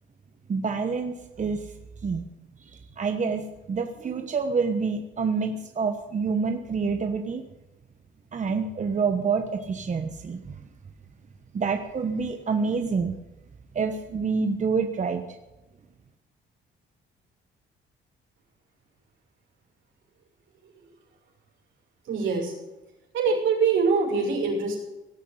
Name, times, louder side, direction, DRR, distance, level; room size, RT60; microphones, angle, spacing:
voice 1, 0.5-1.7 2.0-2.2 2.6-7.4 8.3-10.5 11.5-13.1 13.7-15.2, right 5 dB, 40° right, 6 dB, 1.2 m, -27 dB
voice 2, 22.1-22.5 23.1-24.8, right 5 dB, 75° right, 0 dB, 6.2 m, -23 dB
17.5 x 8.2 x 8.0 m, 1.0 s
cardioid pair, 90°, 20 cm